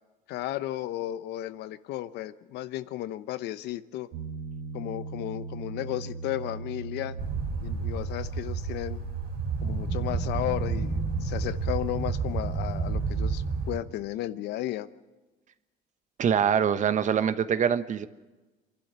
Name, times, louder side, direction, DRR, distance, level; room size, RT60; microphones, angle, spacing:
voice 1, 0.3-4.1 4.7-7.2 7.6-9.0 9.6-14.9, left 14 dB, 80° left, 14 dB, 0.9 m, -34 dB
Piano, 4.1-12.2, right 4 dB, 90° right, 2.6 m, -39 dB
sound 1, 7.2-13.8, right 4 dB, 60° right, 3.8 m, -30 dB
voice 2, 16.2-18.1, right 8 dB, 45° right, 12 dB, 1.1 m, -24 dB
26.5 x 12.0 x 9.5 m, 1.2 s
cardioid pair, 110°, 17 cm